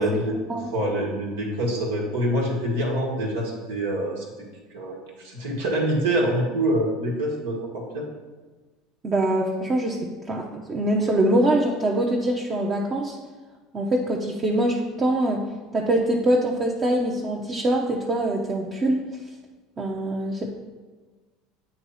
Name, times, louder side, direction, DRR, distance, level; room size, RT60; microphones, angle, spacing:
voice 1, 0.0-0.3 0.7-4.3 4.7-8.0, right 1 dB, 85° right, -2 dB, 1.6 m, -25 dB
voice 2, 9.0-13.2 13.7-15.4 15.7-19.0 19.8-20.5, right 1 dB, 30° right, -1 dB, 0.8 m, -24 dB
7.9 x 3.1 x 5.6 m, 1.3 s
hypercardioid pair, 85°, 0 cm